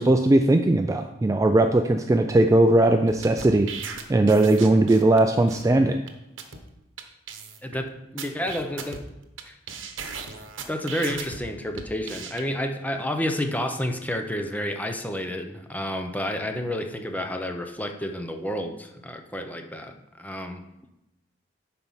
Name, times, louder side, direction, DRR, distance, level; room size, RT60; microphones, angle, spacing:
voice 1, 0.0-3.7 4.1-6.0, right 2 dB, 15° right, 6 dB, 0.3 m, -19 dB
sound 1, 3.1-5.2 5.5-5.6 6.1-6.2 6.4-6.6 7.0-7.1 7.3-7.8 8.2-9.4 9.7-11.4 11.8-12.4, right 6 dB, 75° right, 1.0 m, -37 dB
voice 2, 7.6-9.1 9.5-9.6 10.7-19.9 20.2-20.6, left 1 dB, 10° left, 5 dB, 0.7 m, -30 dB
9.5 x 4.5 x 5.6 m, 0.90 s
head